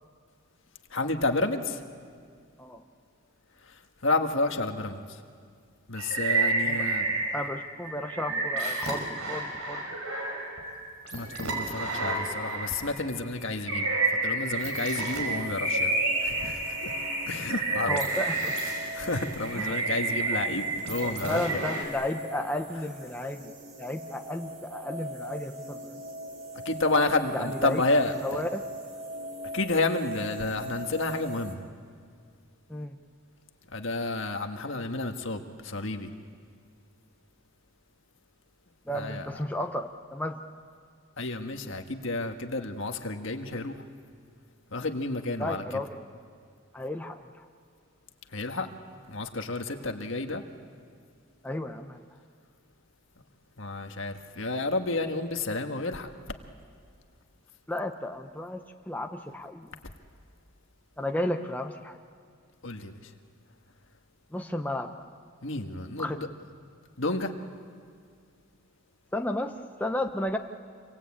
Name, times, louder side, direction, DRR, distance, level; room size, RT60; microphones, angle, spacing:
voice 1, 0.9-1.8 3.7-5.2 5.9-7.2 11.1-13.9 14.2-16.9 17.3-18.0 18.9-21.6 26.6-28.4 29.5-31.6 33.7-36.1 38.9-39.3 41.2-43.8 44.7-45.8 48.3-48.7 49.1-50.4 53.6-56.1 62.6-63.1 65.4-66.3 67.0-67.3, left 2 dB, 60° left, 5 dB, 1.6 m, -30 dB
sound 1, 6.0-7.5 7.8-13.0 13.4-21.8, right 2 dB, 85° right, 5.6 m, -30 dB
voice 2, 7.3-9.8 17.8-18.5 19.5-19.7 21.0-23.5 23.8-26.0 27.3-27.8 28.2-28.6 32.7-33.0 38.9-40.4 45.4-46.0 46.7-47.5 49.8-49.9 51.4-52.1 57.7-59.8 61.0-62.0 64.3-64.9 66.0-66.2 69.1-69.5 69.8-70.4, left 1 dB, 10° left, 4 dB, 0.8 m, -33 dB
sound 2, 15.2-31.5, equal, 35° right, 3.1 m, -41 dB
27.5 x 24.0 x 8.7 m, 2.1 s
head